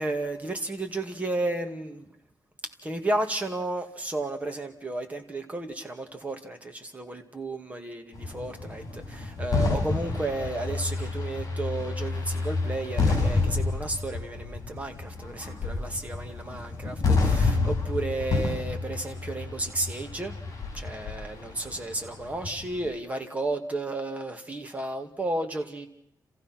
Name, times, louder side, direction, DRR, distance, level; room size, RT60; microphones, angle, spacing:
voice 1, 0.0-2.1 2.8-20.3 20.7-25.9, right 2 dB, 20° right, 5 dB, 2.2 m, -33 dB
sound 1, 8.1-22.9, left 3 dB, 45° left, 7.3 m, -29 dB
30.0 x 15.0 x 6.0 m, 0.76 s
wide cardioid pair, 155°, 7 cm